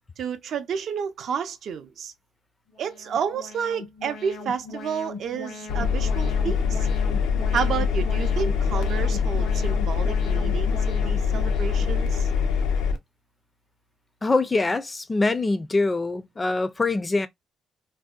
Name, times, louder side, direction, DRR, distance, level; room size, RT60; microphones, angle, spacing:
voice 1, 0.2-2.1 2.8-6.9 7.5-12.3, right 7 dB, 70° right, 0.4 m, -30 dB
Alarm, 2.7-12.6, left 3 dB, 70° left, 0.8 m, -39 dB
Engine, 5.7-13.0, left 6 dB, 90° left, 0.4 m, -24 dB
voice 2, 14.2-17.3, left 3 dB, 25° left, 0.3 m, -24 dB
2.6 x 2.1 x 2.3 m
cardioid pair, 90°, 0 cm